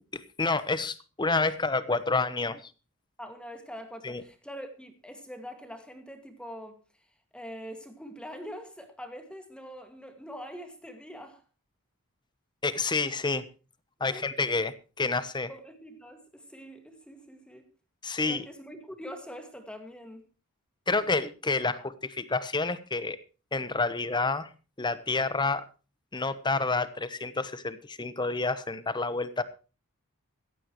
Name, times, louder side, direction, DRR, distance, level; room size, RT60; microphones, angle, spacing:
voice 1, 0.1-2.7 4.0-4.2 12.6-13.4 14.0-15.5 18.0-18.5 20.9-23.2 23.5-24.5 24.8-25.7 26.1-29.4, left 3 dB, 20° left, 0.9 m, -29 dB
voice 2, 3.2-7.1 7.3-11.4 14.1-14.3 15.5-17.7 18.2-20.3, equal, 5° left, 2.0 m, -44 dB
15.5 x 15.0 x 3.1 m
head